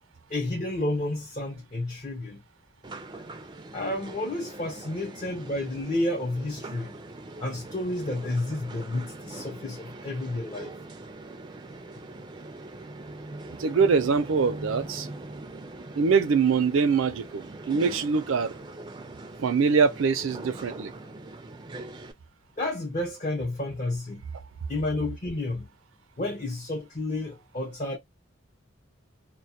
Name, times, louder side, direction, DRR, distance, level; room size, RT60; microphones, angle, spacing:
voice 1, 0.3-2.4 3.3-3.4 3.7-7.0 7.4-10.8 22.6-24.2 24.7-25.7 26.2-28.0, left 2 dB, 40° left, 0.6 m, -31 dB
sound 1, 2.8-22.1, right 2 dB, 25° right, 0.3 m, -42 dB
voice 2, 13.6-15.1 16.0-18.5 19.4-20.9, right 5 dB, 90° right, 0.5 m, -23 dB
2.2 x 2.1 x 2.7 m
head